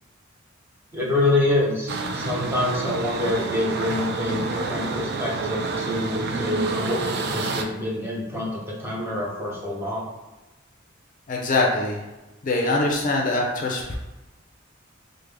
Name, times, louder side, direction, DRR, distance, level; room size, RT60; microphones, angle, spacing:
voice 1, 0.9-10.1, left 2 dB, 10° right, -5 dB, 0.7 m, -26 dB
sound 1, 1.9-7.6, right 4 dB, 55° right, 0.3 m, -29 dB
voice 2, 11.3-12.0 12.4-14.0, left 2 dB, 40° left, 0 dB, 0.4 m, -23 dB
3.4 x 2.1 x 3.3 m, 1.1 s
head